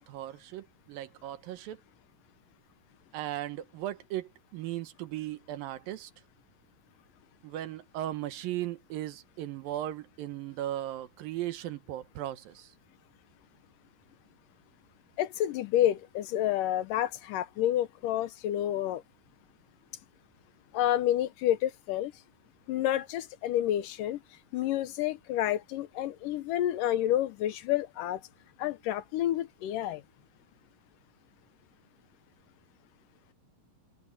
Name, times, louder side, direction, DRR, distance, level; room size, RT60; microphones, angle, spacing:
voice 1, 0.1-1.8 3.1-6.1 7.4-12.7, right 13 dB, 80° right, 2.8 m, -37 dB
voice 2, 15.2-19.0 20.7-22.1 22.7-24.2 24.5-28.2 28.6-30.0, left 12 dB, 75° left, 2.4 m, -29 dB
open air
omnidirectional pair, 4.1 m